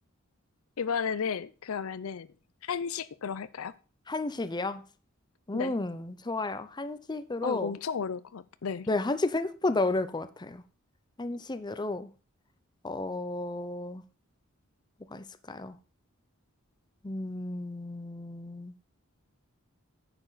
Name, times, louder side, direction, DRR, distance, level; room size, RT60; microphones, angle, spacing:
voice 1, 0.8-2.3 2.6-3.8 5.5-5.8 7.4-8.9, left 6 dB, 80° left, 0.5 m, -33 dB
voice 2, 4.1-4.8 5.5-7.7 8.9-10.6 11.2-12.1 12.8-14.0 15.1-15.8 17.0-18.7, left 2 dB, 20° left, 0.6 m, -32 dB
9.8 x 7.1 x 4.0 m
head